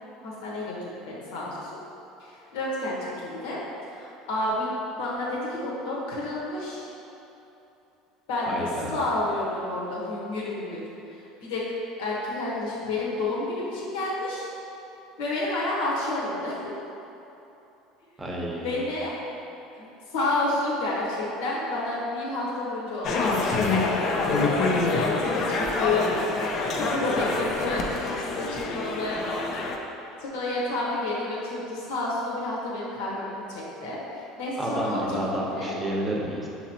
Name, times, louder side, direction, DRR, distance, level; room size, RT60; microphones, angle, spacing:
voice 1, 0.2-1.8 2.2-3.6 3.9-4.7 5.0-6.9 8.3-10.8 11.1-11.7 12.0-14.5 15.2-16.7 18.6-19.2 19.7-24.3 24.6-29.2 30.2-35.2 35.5-35.7, left 2 dB, 90° left, -5 dB, 1.1 m, -30 dB
voice 2, 8.5-9.0 18.2-18.8 34.5-36.5, right 1 dB, 15° right, -3 dB, 0.7 m, -30 dB
sound 1, 23.0-29.8, left 3 dB, 50° left, 0.4 m, -26 dB
6.0 x 3.0 x 2.8 m, 2.9 s
supercardioid pair, 125°, 0 cm